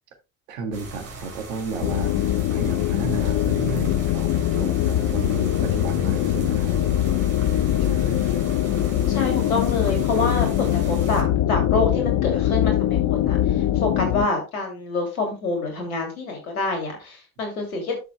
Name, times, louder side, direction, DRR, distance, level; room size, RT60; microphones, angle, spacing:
voice 1, 0.5-2.2 2.5-6.9 7.8-8.3, right 5 dB, 70° right, 1.8 m, -33 dB
sound 1, 0.7-11.2, right 2 dB, 35° right, 3.5 m, -38 dB
sound 2, 1.8-14.3, left 12 dB, 50° left, 0.8 m, -22 dB
voice 2, 9.1-13.4 13.8-17.9, left 3 dB, 75° left, 3.0 m, -26 dB
11.5 x 7.0 x 2.3 m
figure-of-eight pair, 60°, 43 cm